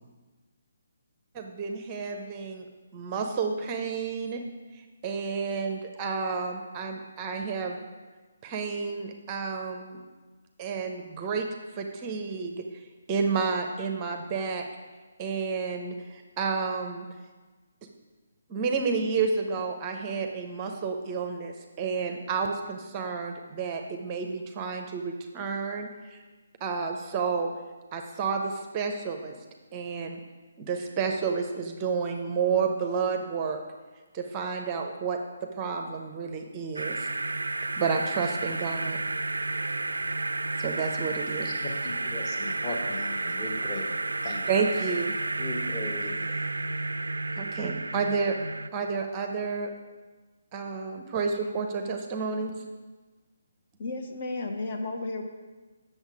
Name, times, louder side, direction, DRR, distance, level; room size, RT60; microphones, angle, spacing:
voice 1, 1.3-2.7 2.9-4.4 5.0-7.9 8.4-10.0 10.6-11.4 11.7-12.6 13.1-14.7 15.2-17.1 18.5-26.2 26.6-27.5 27.9-29.4 29.7-30.2 30.6-33.6 34.1-35.2 35.6-37.1 37.8-39.0 40.6-41.5 44.5-45.1 47.4-48.4 48.7-49.7 50.5-52.5, right 5 dB, 25° right, 4 dB, 0.6 m, -30 dB
sound 1, 36.8-48.7, right 2 dB, 70° right, 0.3 m, -31 dB
voice 2, 41.4-43.9 44.2-44.4 45.4-46.3, left 2 dB, 20° left, 1 dB, 1.2 m, -38 dB
voice 3, 53.8-55.2, left 2 dB, 40° left, 3 dB, 0.8 m, -33 dB
8.0 x 6.5 x 4.8 m, 1.3 s
figure-of-eight pair, 140°, 0 cm